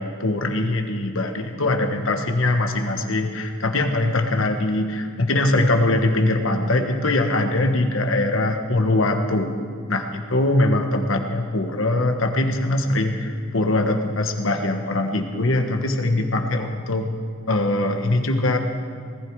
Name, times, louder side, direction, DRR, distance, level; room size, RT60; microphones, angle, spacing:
voice 1, 0.0-9.5 9.9-17.1 17.5-18.6, left 2 dB, 70° left, 5 dB, 1.4 m, -22 dB
19.0 x 14.5 x 4.8 m, 2.2 s
head